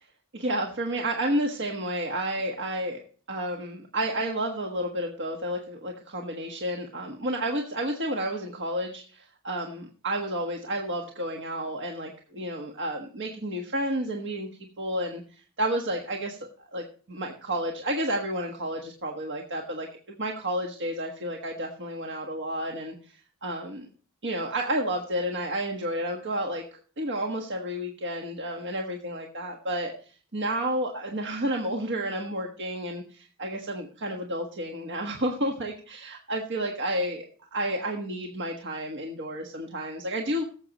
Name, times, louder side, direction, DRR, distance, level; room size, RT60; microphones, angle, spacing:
voice 1, 0.3-14.5 14.8-23.9 24.2-26.6 27.0-37.3 37.5-40.4, right 1 dB, 55° right, 1 dB, 1.5 m, -31 dB
18.5 x 7.7 x 3.0 m, 0.40 s
head